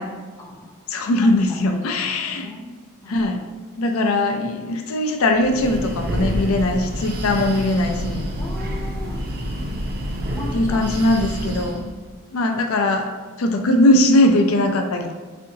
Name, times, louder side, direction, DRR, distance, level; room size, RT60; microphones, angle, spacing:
voice 1, 0.0-0.8 1.7-2.7 3.0-3.4 8.4-9.2 10.3-10.9 11.7-12.1, left 2 dB, 15° left, -2 dB, 0.6 m, -38 dB
voice 2, 0.9-2.5 3.1-3.4 3.8-8.3 10.5-11.8 12.3-13.1 13.4-15.1, left 1 dB, 75° left, 4 dB, 0.4 m, -20 dB
Breathing, 5.3-11.9, equal, 45° right, 0.6 m, -28 dB
4.3 x 3.6 x 2.7 m, 1.4 s
head